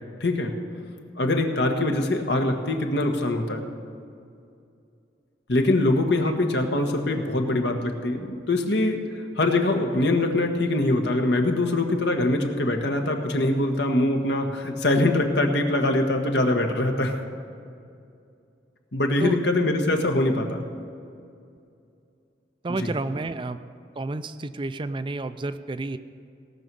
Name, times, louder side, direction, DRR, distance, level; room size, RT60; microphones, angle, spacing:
voice 1, 0.2-0.5 1.1-3.6 5.5-9.0 9.4-17.1 18.9-20.6 22.8-22.9, left 2 dB, 75° left, 3 dB, 1.4 m, -23 dB
voice 2, 22.6-23.6 24.0-26.0, right 2 dB, 30° right, 12 dB, 0.4 m, -30 dB
18.0 x 6.2 x 6.9 m, 2.5 s
head